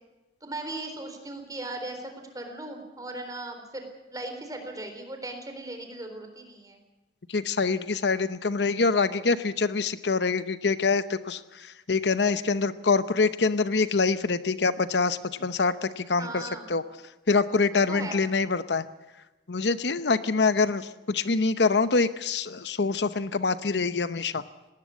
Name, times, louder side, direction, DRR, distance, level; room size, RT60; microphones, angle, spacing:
voice 1, 0.4-3.8 4.1-6.8 16.2-16.7 17.9-18.2, right 2 dB, 20° right, 5 dB, 4.0 m, -38 dB
voice 2, 7.3-16.8 17.3-18.9 19.5-24.4, left 4 dB, 75° left, 13 dB, 0.8 m, -25 dB
19.0 x 18.5 x 8.3 m, 1.0 s
head